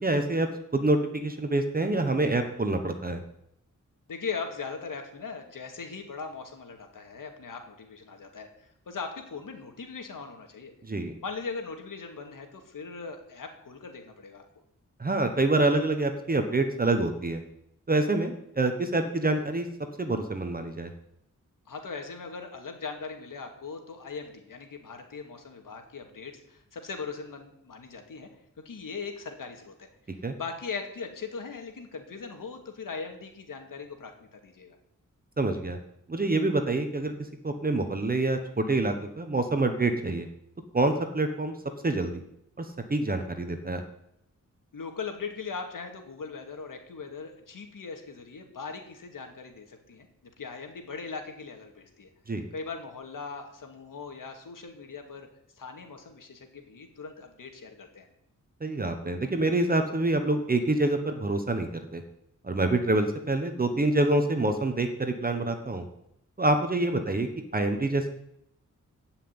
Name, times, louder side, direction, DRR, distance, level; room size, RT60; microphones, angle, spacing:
voice 1, 0.0-3.2 10.8-11.1 15.0-17.4 17.9-19.7 20.0-20.9 30.2-30.3 35.4-35.8 36.1-37.1 37.4-40.3 40.7-41.5 41.8-42.2 42.6-43.8 52.3-52.4 58.6-62.0 62.4-65.8 66.4-68.1, right 2 dB, 30° right, 6 dB, 1.1 m, -26 dB
voice 2, 4.1-10.7 11.2-14.4 21.7-28.3 28.6-29.9 30.4-34.8 44.7-50.1 50.4-52.1 52.5-55.3 55.6-58.1, left 5 dB, 90° left, 4 dB, 2.4 m, -39 dB
16.0 x 5.8 x 9.6 m, 0.78 s
wide cardioid pair, 180°, 32 cm